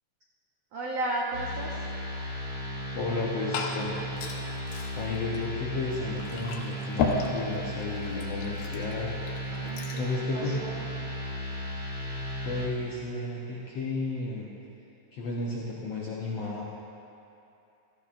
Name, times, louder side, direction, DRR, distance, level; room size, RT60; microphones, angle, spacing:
voice 1, 0.7-1.8 9.5-10.9, right 2 dB, 80° right, -3 dB, 1.4 m, -34 dB
sound 1, 1.3-12.7, right 1 dB, 40° right, 2.1 m, -35 dB
voice 2, 2.9-4.0 4.9-9.1 10.0-10.6 12.4-14.5 15.1-16.6, left 3 dB, 70° left, -5 dB, 1.5 m, -33 dB
Liquid, 3.0-10.1, left 4 dB, 85° left, 3.0 m, -36 dB
17.5 x 14.0 x 2.5 m, 2.8 s
omnidirectional pair, 4.2 m